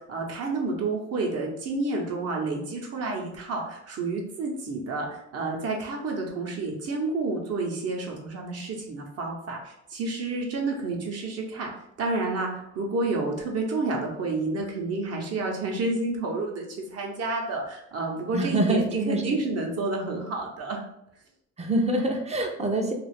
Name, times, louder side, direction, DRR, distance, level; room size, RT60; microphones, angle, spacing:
voice 1, 0.0-11.7 12.0-20.8, right 3 dB, 55° right, 0 dB, 0.7 m, -30 dB
voice 2, 18.3-19.2 21.6-22.9, right 1 dB, 20° right, 3 dB, 0.5 m, -25 dB
2.4 x 2.3 x 3.3 m, 0.77 s
cardioid pair, 90°, 30 cm